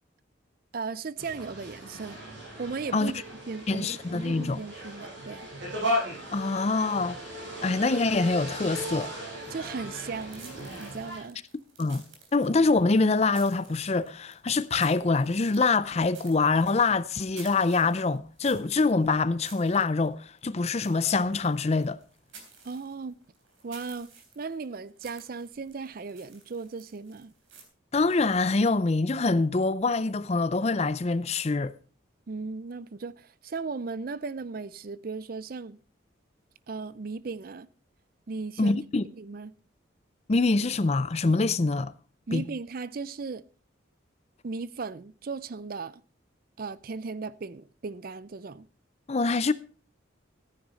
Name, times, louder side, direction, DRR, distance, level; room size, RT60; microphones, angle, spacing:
voice 1, 0.7-2.2 2.6-3.2 3.5-5.5 9.5-11.4 22.6-23.2 23.6-24.1 24.4-27.3 32.3-35.8 36.7-37.7 38.3-38.8 39.2-39.5 42.3-43.4 44.4-46.0 46.6-48.7, right 4 dB, 50° right, 0.5 m, -36 dB
sound 1, 1.2-11.2, equal, 65° right, 6.9 m, -36 dB
voice 2, 3.7-4.6 6.3-7.2 7.6-9.1 11.8-12.0 12.3-22.0 27.9-31.7 38.6-39.0 40.3-41.9 42.3-42.4 49.1-49.5, left 3 dB, 35° left, 0.5 m, -25 dB
sound 2, 10.0-27.6, right 5 dB, 90° right, 3.5 m, -53 dB
14.5 x 9.9 x 4.1 m
head